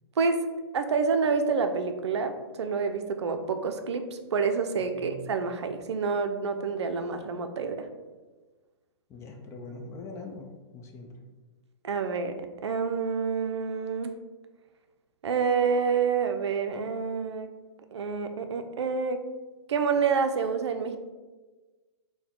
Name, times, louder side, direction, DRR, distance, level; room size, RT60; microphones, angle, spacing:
voice 1, 0.7-7.9 11.8-12.4 12.6-14.1 15.2-17.5 17.9-19.2 19.7-21.0, right 5 dB, 75° right, 7 dB, 0.5 m, -28 dB
voice 2, 9.1-11.1, left 3 dB, 20° left, 2 dB, 0.5 m, -42 dB
4.1 x 2.2 x 4.2 m, 1.3 s
hypercardioid pair, 135°, 15 cm